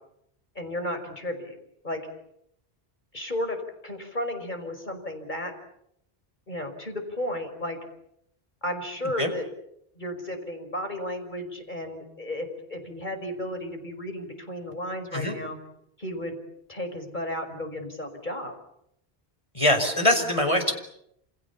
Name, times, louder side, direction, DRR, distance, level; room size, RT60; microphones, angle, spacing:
voice 1, 0.6-1.6 1.8-2.0 3.1-5.5 6.5-7.8 8.6-9.5 10.0-15.6 16.0-16.4 16.7-18.5, left 1 dB, 45° left, 6 dB, 5.7 m, -33 dB
voice 2, 19.6-20.7, left 1 dB, 30° left, 6 dB, 5.3 m, -23 dB
29.0 x 28.0 x 7.2 m, 0.76 s
omnidirectional pair, 1.1 m